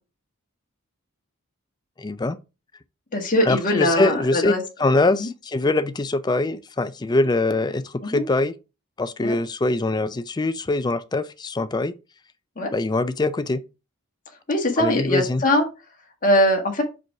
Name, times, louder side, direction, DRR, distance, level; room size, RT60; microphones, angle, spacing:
voice 1, 2.0-2.4 3.4-4.5 4.8-8.5 9.0-11.9 12.7-13.6 14.8-15.4, left 2 dB, 20° left, 0.4 m, -23 dB
voice 2, 3.1-4.6 5.2-5.3 8.0-8.2 9.2-9.4 12.6-12.7 14.5-15.6 16.2-16.8, left 1 dB, 40° left, 1.5 m, -21 dB
5.1 x 4.6 x 4.7 m
head